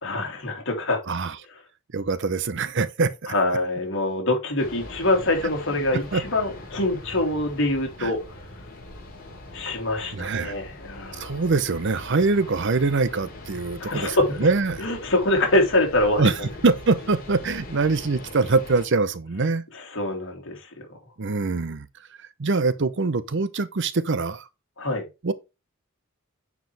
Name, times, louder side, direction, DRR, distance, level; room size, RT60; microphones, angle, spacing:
voice 1, 0.0-1.0 3.3-8.5 9.5-11.4 13.8-14.5 14.8-16.5 19.7-20.7 24.8-25.0, left 2 dB, 60° left, 2.7 m, -25 dB
voice 2, 1.9-3.3 6.1-6.2 8.0-8.1 10.1-10.6 11.2-14.8 16.2-19.6 21.2-21.9 22.4-24.5 25.2-25.3, right 3 dB, 55° right, 0.7 m, -24 dB
sound 1, 4.6-18.9, left 2 dB, 45° left, 3.1 m, -41 dB
9.4 x 4.9 x 3.3 m
head